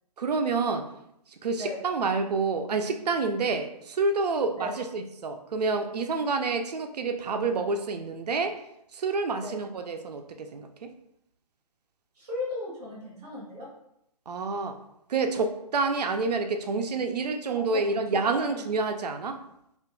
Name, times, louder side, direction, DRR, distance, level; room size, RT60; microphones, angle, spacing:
voice 1, 0.2-0.9 1.4-8.6 8.9-10.9 14.3-14.7 15.1-19.4, right 4 dB, 80° right, 6 dB, 0.5 m, -28 dB
voice 2, 12.1-13.7 17.5-17.8 18.1-18.6, left 2 dB, 5° right, -13 dB, 0.3 m, -36 dB
2.5 x 2.2 x 3.7 m, 0.78 s
hypercardioid pair, 165°, 20 cm